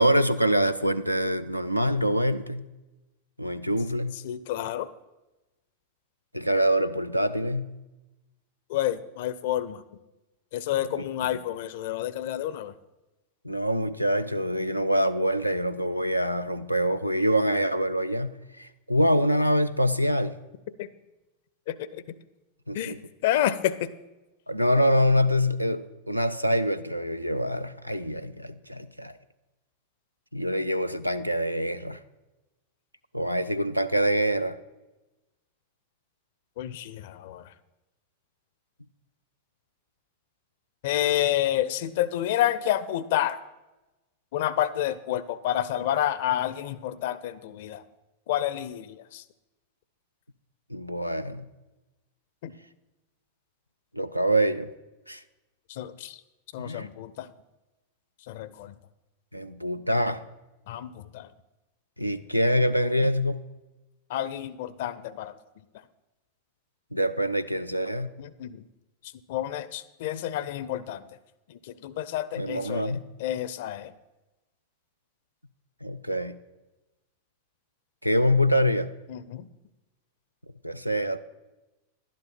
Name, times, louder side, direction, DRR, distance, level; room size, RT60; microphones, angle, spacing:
voice 1, 0.0-2.7 3.4-4.2 6.3-7.7 11.0-11.1 13.4-20.4 22.7-23.0 24.5-29.2 30.3-32.0 33.1-34.6 50.7-51.5 53.9-54.7 55.1-55.2 56.6-56.9 59.3-60.2 62.0-63.4 66.9-68.1 72.4-73.0 75.8-76.4 78.0-78.9 80.6-81.2, equal, 90° right, 12 dB, 0.4 m, -25 dB
voice 2, 4.2-4.9 8.7-9.8 10.5-12.7 20.8-20.9 21.7-22.0 22.7-23.9 36.6-37.5 40.8-43.4 44.3-47.8 48.3-49.2 52.4-52.5 55.7-56.2 56.5-57.3 58.3-58.8 60.7-61.3 64.1-65.4 68.2-68.6 69.3-71.1 71.5-73.9 79.1-79.5, left 12 dB, 55° left, 17 dB, 0.5 m, -29 dB
11.5 x 10.5 x 4.3 m, 1.1 s
figure-of-eight pair, 90°, 0 cm